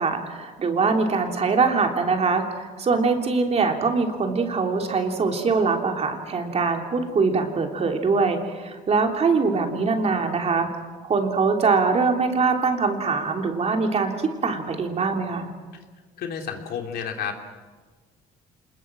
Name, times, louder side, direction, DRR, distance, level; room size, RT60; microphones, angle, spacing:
voice 1, 0.0-10.7 11.0-15.5, right 4 dB, 40° right, 3 dB, 3.2 m, -23 dB
voice 2, 16.2-17.4, left 7 dB, 70° left, 4 dB, 3.1 m, -31 dB
26.5 x 21.0 x 7.6 m, 1.4 s
cardioid pair, 110°, 17 cm